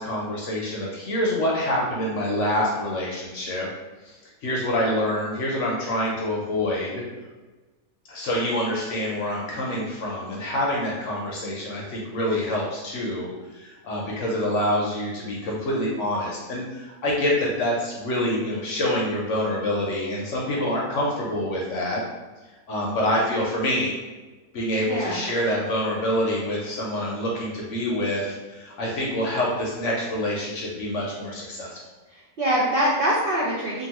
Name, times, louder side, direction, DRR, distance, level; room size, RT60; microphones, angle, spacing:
voice 1, 0.0-3.7 4.0-4.1 4.4-7.0 8.1-22.0 22.7-23.9 24.5-31.8, left 1 dB, 65° left, -3 dB, 0.8 m, -26 dB
voice 2, 24.8-25.3 32.1-33.9, right 1 dB, 75° right, -5 dB, 0.5 m, -24 dB
2.8 x 2.6 x 2.9 m, 1.2 s
omnidirectional pair, 1.7 m